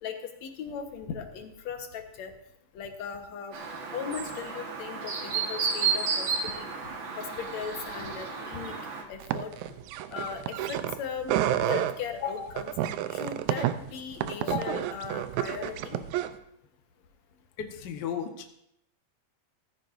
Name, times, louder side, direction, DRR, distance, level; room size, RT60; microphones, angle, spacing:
voice 1, 0.0-2.3 2.7-3.6 3.9-6.7 7.2-8.8 9.1-9.5 10.1-11.3 11.6-12.7 13.1-16.0, left 6 dB, 65° left, 5 dB, 2.3 m, -37 dB
Chirp tweet, 3.5-9.0, right 5 dB, 50° right, 1.7 m, -32 dB
sound 1, 9.2-11.0 11.2-12.0 12.6-16.4, right 12 dB, 80° right, 1.9 m, -30 dB
voice 2, 17.6-18.5, left 8 dB, 85° left, 5 dB, 0.9 m, -35 dB
15.0 x 15.0 x 2.6 m, 0.74 s
omnidirectional pair, 3.6 m